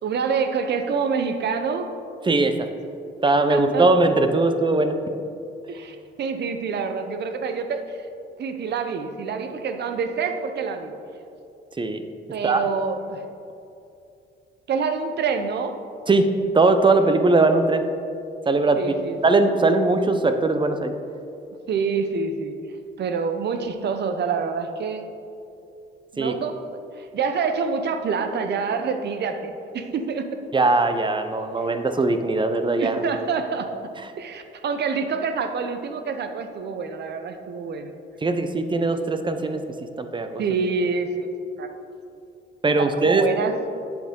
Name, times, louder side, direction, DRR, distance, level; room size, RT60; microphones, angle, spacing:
voice 1, 0.0-1.9 3.5-3.9 5.7-8.1 8.4-11.0 12.3-13.2 14.7-15.8 18.8-19.2 21.7-22.6 23.0-25.1 26.1-30.4 32.7-37.9 40.4-41.3 41.6-41.7 42.8-43.6, right 5 dB, 60° right, 7 dB, 0.7 m, -27 dB
voice 2, 2.3-2.7 3.2-5.0 11.8-12.0 12.4-12.6 16.1-17.8 18.4-19.0 19.2-20.9 26.2-26.3 30.5-33.0 38.2-39.6 40.0-40.4 42.6-43.2, right 3 dB, 25° right, 8 dB, 0.6 m, -20 dB
8.7 x 7.1 x 3.8 m, 2.6 s
cardioid pair, 90°, 20 cm